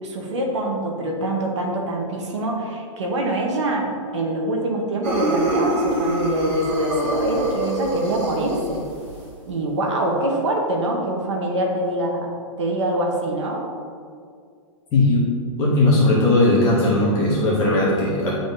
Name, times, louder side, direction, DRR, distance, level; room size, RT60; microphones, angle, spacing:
voice 1, 0.0-8.8 9.4-12.3 12.6-13.6, right 1 dB, 55° right, 0 dB, 1.1 m, -24 dB
sound 1, 5.0-9.3, right 1 dB, 30° right, 1.3 m, -25 dB
voice 2, 14.9-15.2 15.6-18.3, left 2 dB, 15° left, -6 dB, 0.9 m, -18 dB
9.2 x 3.8 x 2.7 m, 2.2 s
hypercardioid pair, 180°, 18 cm